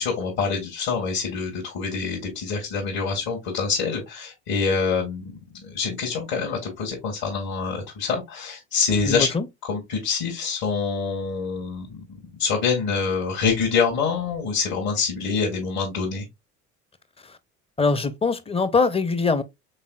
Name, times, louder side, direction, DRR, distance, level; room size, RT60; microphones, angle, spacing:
voice 1, 0.0-9.3 9.7-16.2, left 5 dB, 60° left, 1.6 m, -26 dB
voice 2, 9.0-9.5 17.2-17.4 17.8-19.4, left 4 dB, 15° left, 0.5 m, -22 dB
4.0 x 3.5 x 2.4 m
hypercardioid pair, 65°, 40 cm